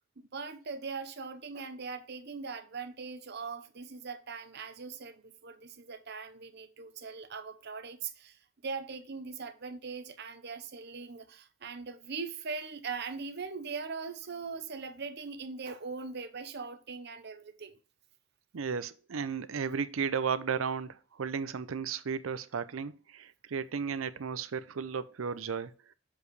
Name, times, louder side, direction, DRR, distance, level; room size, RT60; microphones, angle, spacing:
voice 1, 0.2-17.8, right 5 dB, 55° right, 0.8 m, -41 dB
voice 2, 18.5-25.7, right 6 dB, 85° right, 0.6 m, -34 dB
7.2 x 4.9 x 3.1 m
head